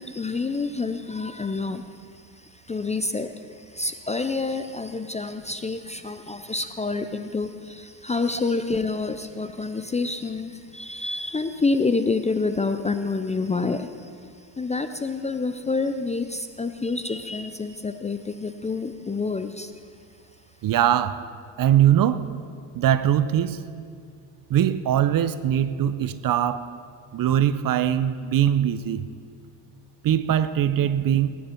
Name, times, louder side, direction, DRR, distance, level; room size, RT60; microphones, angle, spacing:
voice 1, 0.0-19.7, left 3 dB, 15° left, 0.4 m, -28 dB
voice 2, 20.6-21.2 21.6-22.3 22.7-23.6 24.5-26.7 27.1-29.1 30.0-31.3, right 10 dB, 45° right, 0.7 m, -21 dB
19.5 x 9.4 x 4.5 m
supercardioid pair, 90°, 46 cm